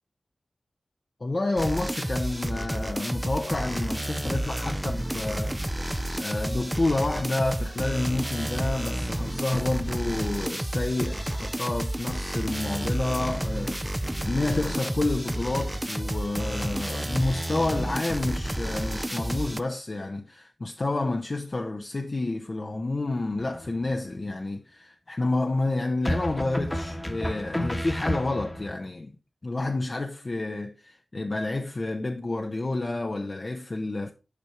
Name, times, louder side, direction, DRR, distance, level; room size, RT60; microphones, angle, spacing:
voice 1, 1.2-29.1 29.4-34.1, left 2 dB, 45° left, 0.8 m, -29 dB
sound 1, 1.6-19.6, right 1 dB, 10° right, 0.6 m, -30 dB
sound 2, 23.4-24.0 26.0-28.7, equal, 15° left, 1.2 m, -31 dB
8.4 x 5.3 x 4.4 m
wide cardioid pair, 70°, 0 cm